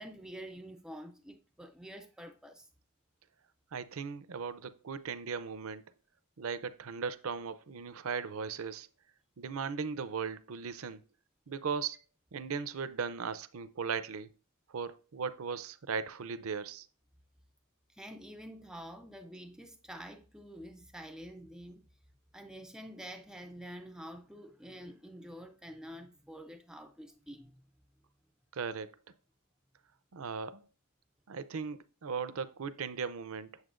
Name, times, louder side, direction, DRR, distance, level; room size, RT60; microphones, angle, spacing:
voice 1, 0.0-2.7 17.9-21.8 22.3-27.6, equal, 5° right, 0.4 m, -48 dB
voice 2, 3.7-5.8 6.4-8.9 9.4-11.0 11.5-12.0 12.3-14.3 14.7-16.9 28.5-28.9 30.1-30.6 31.3-33.6, right 5 dB, 65° right, 0.6 m, -37 dB
8.1 x 7.3 x 2.5 m
head